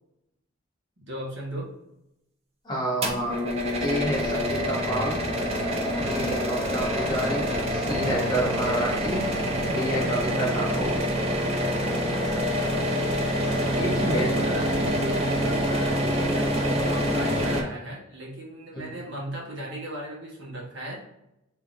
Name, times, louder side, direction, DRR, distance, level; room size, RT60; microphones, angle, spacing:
voice 1, 1.0-1.7 8.7-8.8 14.1-21.0, equal, 60° right, -3 dB, 1.2 m, -36 dB
voice 2, 2.6-3.4 3.8-5.2 6.0-9.3 9.7-11.0 13.7-14.3 18.7-19.0, right 1 dB, 20° left, -5 dB, 1.2 m, -29 dB
sound 1, 3.0-17.6, equal, 30° right, 0.6 m, -26 dB
3.6 x 3.3 x 2.5 m, 0.86 s
head